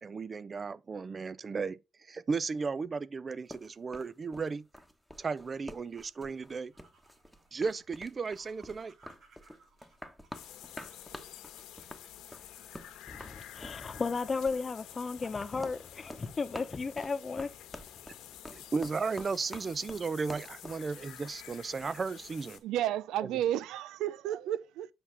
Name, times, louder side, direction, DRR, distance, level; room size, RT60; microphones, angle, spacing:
voice 1, 0.0-1.8 2.1-4.6 5.2-6.7 7.5-8.9 18.5-22.6 23.2-23.4, right 4 dB, 35° right, 0.5 m, -35 dB
sound 1, 3.5-21.9, equal, ahead, 1.2 m, -48 dB
sound 2, 6.6-14.2, right 3 dB, 65° right, 4.9 m, -65 dB
sound 3, 10.3-22.6, left 11 dB, 90° left, 1.4 m, -50 dB
voice 2, 13.1-17.5, left 4 dB, 30° left, 0.9 m, -34 dB
voice 3, 22.6-24.9, right 12 dB, 90° right, 0.5 m, -32 dB
7.9 x 5.8 x 3.4 m
cardioid pair, 90°, 0 cm